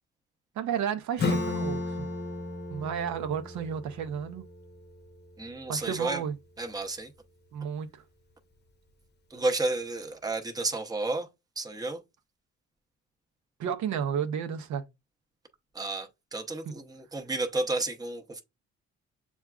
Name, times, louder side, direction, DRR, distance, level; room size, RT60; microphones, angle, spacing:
voice 1, 0.6-2.1 2.7-4.4 5.7-6.3 7.5-8.0 13.6-14.8, right 8 dB, 70° right, 0.7 m, -32 dB
Acoustic guitar / Strum, 1.2-6.4, left 3 dB, 35° left, 0.8 m, -35 dB
voice 2, 5.4-6.2 6.6-7.1 9.3-11.3 11.6-12.0 15.7-18.4, right 2 dB, 10° right, 0.7 m, -31 dB
7.0 x 2.3 x 2.3 m
cardioid pair, 90°, 30 cm